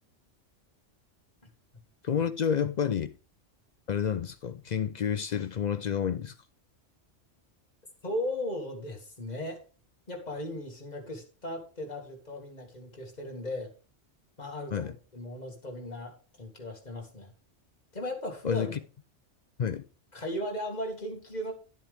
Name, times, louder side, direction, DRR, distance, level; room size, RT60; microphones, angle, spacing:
voice 1, 2.0-3.1 3.9-6.4 14.7-14.9 18.4-18.8 19.6-19.8, left 8 dB, 60° left, 0.4 m, -29 dB
voice 2, 8.0-9.6 10.1-13.7 14.4-17.3 17.9-18.7 20.1-21.5, left 1 dB, 35° left, 2.1 m, -37 dB
11.0 x 7.5 x 3.4 m
omnidirectional pair, 1.3 m